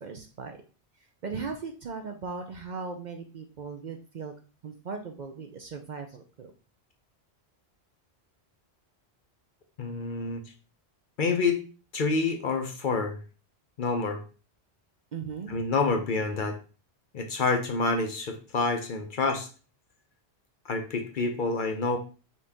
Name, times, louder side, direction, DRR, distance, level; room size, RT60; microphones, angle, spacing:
voice 1, 0.0-0.6 1.2-4.3 4.6-6.5 15.1-15.6, right 5 dB, 55° right, 5 dB, 0.6 m, -38 dB
voice 2, 9.8-10.4 11.2-11.6 11.9-13.2 13.8-14.2 15.5-16.6 17.1-19.5 20.7-22.0, left 4 dB, 55° left, 6 dB, 0.7 m, -27 dB
5.6 x 2.7 x 3.5 m, 0.35 s
omnidirectional pair, 1.1 m